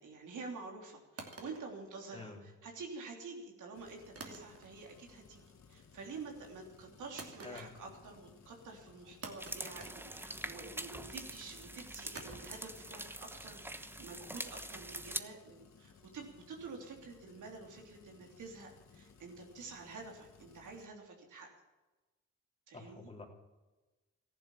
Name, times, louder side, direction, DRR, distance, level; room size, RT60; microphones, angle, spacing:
voice 1, 0.0-5.4 5.7-21.5 22.7-23.1, right 4 dB, 90° right, 1 dB, 3.3 m, -49 dB
sound 1, 1.2-2.6 4.2-5.0 5.3-5.8 7.2-8.1 8.4-8.5 9.2-10.7 12.1-15.2, right 3 dB, 50° right, 2.7 m, -52 dB
sound 2, 3.7-20.9, left 6 dB, 65° left, 1.7 m, -61 dB
voice 2, 7.4-7.8 22.7-23.3, left 3 dB, 20° left, 0 dB, 3.5 m, -48 dB
sound 3, 9.4-15.2, right 1 dB, 5° right, 1.1 m, -44 dB
14.5 x 11.0 x 7.4 m, 1.1 s
cardioid pair, 75°, 30 cm